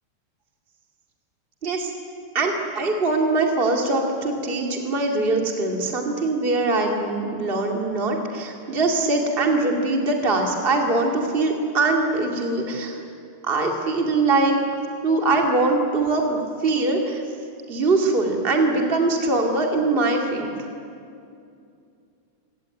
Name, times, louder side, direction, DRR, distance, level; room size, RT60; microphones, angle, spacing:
voice 1, 2.3-13.0 13.4-14.5 15.0-17.2 17.7-20.5, right 3 dB, 80° right, 1 dB, 0.5 m, -22 dB
27.0 x 17.5 x 9.1 m, 2.5 s
omnidirectional pair, 5.7 m